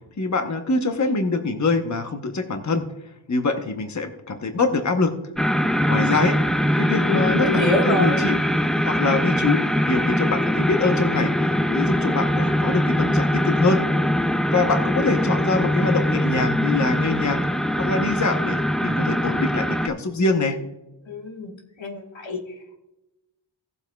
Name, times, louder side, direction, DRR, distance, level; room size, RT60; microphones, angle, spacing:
voice 1, 0.2-2.9 3.3-5.1 5.9-8.4 8.8-13.8 14.5-17.5 17.8-20.6, left 3 dB, 40° left, 5 dB, 0.9 m, -24 dB
sound 1, 5.4-19.9, equal, ahead, 0.4 m, -22 dB
voice 2, 6.9-8.4 21.1-22.8, left 2 dB, 75° left, 2 dB, 1.6 m, -26 dB
17.5 x 7.7 x 2.2 m, 0.97 s
wide cardioid pair, 80°, 46 cm